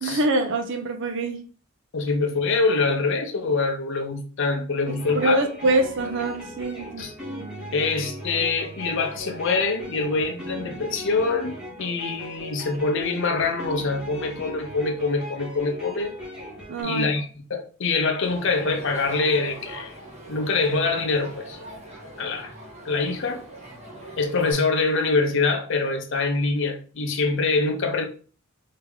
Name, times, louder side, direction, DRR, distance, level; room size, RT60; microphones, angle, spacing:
voice 1, 0.0-1.4 5.1-7.1 16.7-17.1, right 1 dB, 60° right, 0.6 m, -24 dB
voice 2, 1.9-5.4 7.0-7.1 7.7-16.2 16.8-20.0 20.3-21.6 22.2-22.5 22.8-23.4 24.2-28.1, left 3 dB, 60° left, 0.7 m, -24 dB
sound 1, 4.9-16.8, equal, 5° right, 1.4 m, -38 dB
Crowd, 18.2-24.5, right 1 dB, 35° right, 1.4 m, -41 dB
3.4 x 2.8 x 3.5 m
head